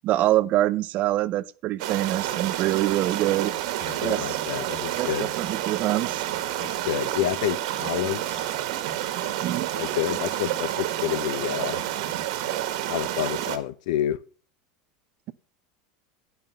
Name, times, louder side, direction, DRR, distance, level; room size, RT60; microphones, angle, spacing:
voice 1, 0.0-3.5 4.0-4.4 4.9-6.3 9.4-9.7, right 15 dB, 45° right, 0.6 m, -25 dB
sound 1, 1.8-13.6, right 13 dB, 70° right, 1.5 m, -29 dB
voice 2, 3.8-5.3 6.6-8.5 9.8-11.8 12.9-14.2, left 13 dB, 75° left, 0.7 m, -29 dB
11.0 x 5.6 x 6.6 m
supercardioid pair, 125°, 4 cm